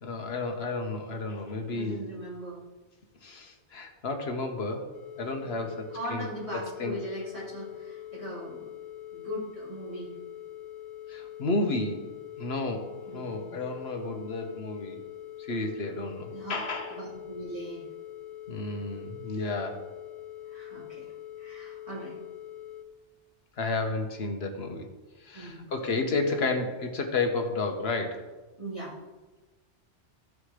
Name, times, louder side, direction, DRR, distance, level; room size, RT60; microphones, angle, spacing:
voice 1, 0.0-2.0 3.2-4.9 5.2-6.3 6.5-7.0 11.1-12.0 12.4-15.0 15.4-17.0 18.5-19.8 23.6-24.9 25.2-28.3, left 3 dB, 65° left, 4 dB, 1.4 m, -32 dB
voice 2, 1.7-2.6 5.4-5.6 5.9-8.7 9.1-10.1 13.1-13.6 16.3-16.5 16.9-17.9 20.5-21.1 21.4-22.1 25.3-25.6 28.6-28.9, right 1 dB, 30° right, -8 dB, 4.0 m, -39 dB
sound 1, 4.9-22.8, left 12 dB, 85° left, 1.0 m, -44 dB
14.5 x 4.9 x 5.0 m, 1.2 s
omnidirectional pair, 1.2 m